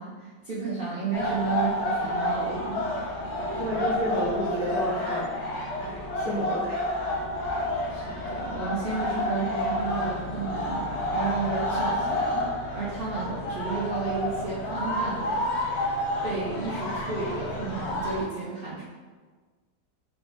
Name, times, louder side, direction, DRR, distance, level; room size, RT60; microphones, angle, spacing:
voice 1, 0.0-2.9 7.9-15.5 16.2-18.8, right 4 dB, 80° right, -8 dB, 0.5 m, -32 dB
sound 1, 1.1-18.2, left 1 dB, 60° left, 0.7 m, -29 dB
voice 2, 3.6-5.3 5.8-6.8, right 1 dB, 25° right, -7 dB, 0.6 m, -31 dB
3.7 x 2.3 x 3.8 m, 1.5 s
omnidirectional pair, 1.8 m